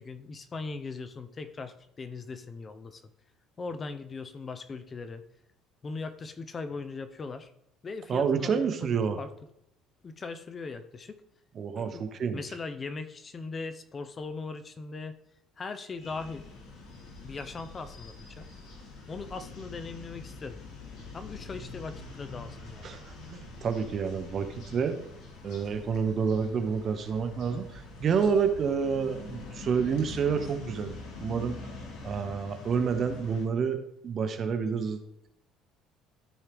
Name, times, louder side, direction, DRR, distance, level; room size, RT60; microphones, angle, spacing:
voice 1, 0.0-3.0 3.6-5.2 5.8-7.5 7.8-8.9 9.2-9.3 10.0-11.2 11.8-12.0 12.3-15.1 15.6-16.5 17.2-18.5 19.1-20.6 21.1-22.9, left 4 dB, 20° left, 11 dB, 0.5 m, -39 dB
voice 2, 8.1-9.2 11.5-12.4 22.8-25.0 25.4-30.9 31.2-31.6 32.0-35.0, right 6 dB, 35° right, 8 dB, 0.8 m, -29 dB
sound 1, 15.9-33.4, left 3 dB, 70° left, 2.8 m, -45 dB
13.0 x 4.5 x 3.4 m, 0.80 s
cardioid pair, 160°, 0 cm